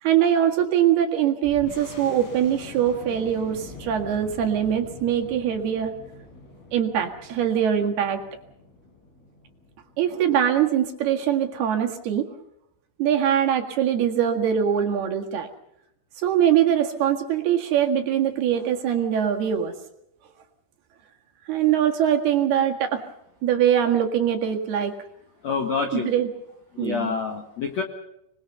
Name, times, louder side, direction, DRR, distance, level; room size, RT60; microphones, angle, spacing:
voice 1, 0.0-6.0 6.7-8.2 10.0-12.3 13.0-15.5 16.2-19.7 21.5-23.0 23.4-25.0 25.9-26.3 26.8-27.2, right 9 dB, 60° right, 3 dB, 3.4 m, -22 dB
sound 1, 1.4-10.6, left 3 dB, 75° left, 8.1 m, -44 dB
voice 2, 25.4-26.1 26.8-27.8, left 5 dB, 60° left, 4 dB, 1.9 m, -27 dB
26.0 x 21.0 x 5.5 m, 0.79 s
omnidirectional pair, 5.6 m